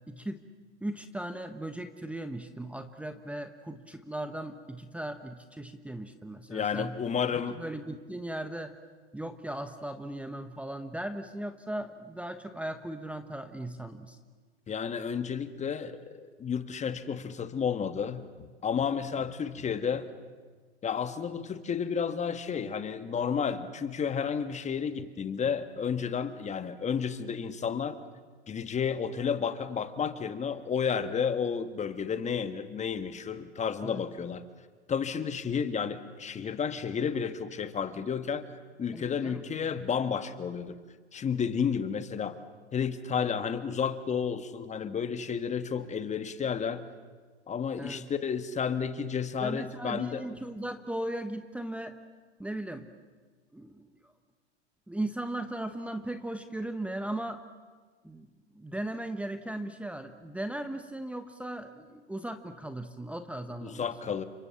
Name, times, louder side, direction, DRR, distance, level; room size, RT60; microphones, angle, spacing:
voice 1, 0.1-0.4 0.8-7.0 7.6-8.7 9.1-14.2 33.8-34.1 38.9-39.4 47.8-48.1 49.4-52.0 52.4-52.9 53.5-54.1 54.9-57.4 58.0-58.3 58.5-64.2, right 1 dB, 5° right, 8 dB, 1.2 m, -37 dB
voice 2, 6.5-7.6 14.7-18.2 18.6-20.1 20.8-28.0 28.5-34.4 34.9-38.5 38.8-40.8 41.1-42.4 42.7-46.8 47.5-50.2 63.6-64.2, left 7 dB, 20° left, 10 dB, 1.5 m, -31 dB
30.0 x 26.0 x 7.2 m, 1.4 s
hypercardioid pair, 105°, 33 cm